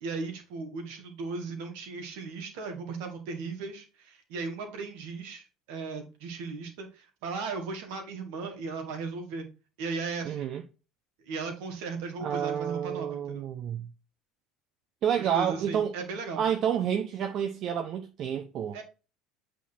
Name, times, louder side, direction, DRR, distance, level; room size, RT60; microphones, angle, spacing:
voice 1, 0.0-9.5 9.8-10.5 11.3-13.5 15.2-16.4 18.7-18.8, right 4 dB, 65° right, 2.0 m, -37 dB
voice 2, 10.2-10.6 12.2-13.9 15.0-15.9 16.4-18.8, right 9 dB, 50° right, 0.8 m, -29 dB
8.2 x 3.8 x 4.2 m
hypercardioid pair, 65°, 0 cm